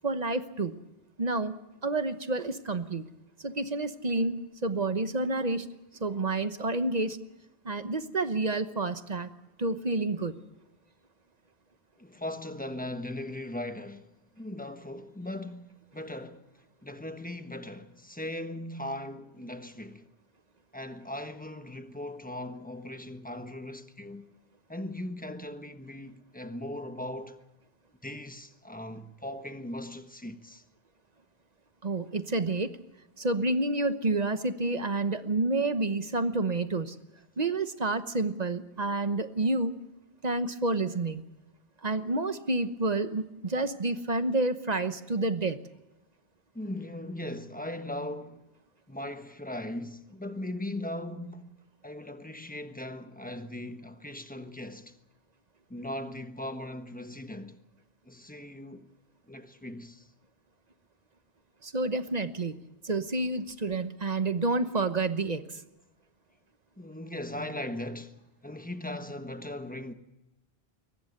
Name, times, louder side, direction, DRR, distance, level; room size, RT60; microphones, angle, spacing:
voice 1, 0.0-0.8 1.2-1.6 1.8-3.1 3.4-5.7 6.0-7.2 7.6-9.3 9.6-10.4 31.8-32.7 33.2-37.0 37.4-39.8 40.2-41.2 41.8-45.6 61.6-62.5 62.8-65.6, right 2 dB, 40° right, 1.1 m, -29 dB
voice 2, 12.0-16.5 16.8-20.1 20.7-24.3 24.7-27.4 28.0-30.6 46.5-48.5 48.9-51.6 51.8-55.0 55.7-57.6 58.0-58.9 59.2-60.1 64.8-64.9 66.8-69.9, left 1 dB, 10° left, 1.2 m, -39 dB
22.5 x 20.0 x 6.7 m
omnidirectional pair, 1.1 m